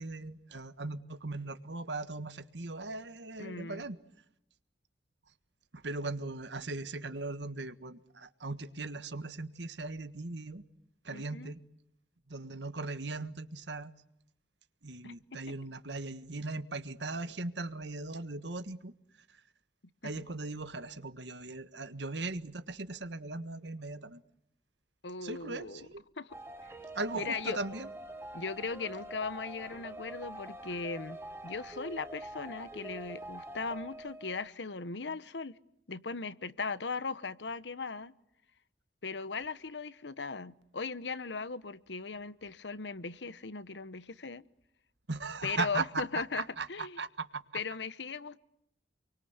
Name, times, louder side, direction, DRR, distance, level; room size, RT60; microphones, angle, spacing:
voice 1, 0.0-4.0 5.8-10.6 11.0-11.6 12.3-13.9 14.8-18.9 20.0-24.2 25.2-26.0 26.9-27.9 45.1-47.4, right 3 dB, 85° right, 1.6 m, -38 dB
voice 2, 3.4-3.8 11.1-11.5 15.0-15.1 15.5-15.6 20.0-20.1 25.0-25.9 26.2-26.4 27.1-27.6 28.3-31.2 31.4-35.6 35.9-38.1 39.0-44.4 45.4-46.4 46.7-47.0 47.5-48.4, left 4 dB, 85° left, 1.1 m, -38 dB
sound 1, 26.3-34.5, right 1 dB, 15° right, 1.7 m, -45 dB
28.5 x 23.5 x 8.1 m
head